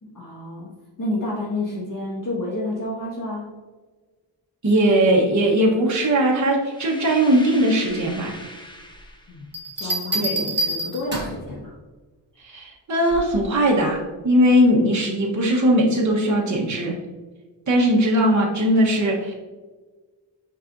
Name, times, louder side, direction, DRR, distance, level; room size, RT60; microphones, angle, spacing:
voice 1, 0.0-0.7 1.0-3.5 9.3-9.4 9.8-11.8, left 1 dB, 45° left, -5 dB, 1.7 m, -30 dB
voice 2, 4.6-8.3 9.8-10.3 12.4-16.9 17.7-19.3, equal, 40° right, -3 dB, 1.2 m, -19 dB
sound 1, 6.7-9.5, left 1 dB, 10° left, 0.9 m, -40 dB
Bell, 9.5-11.5 13.1-13.4, right 1 dB, 25° right, 1.5 m, -27 dB
6.5 x 5.8 x 2.6 m, 1.3 s
wide cardioid pair, 130°, 45 cm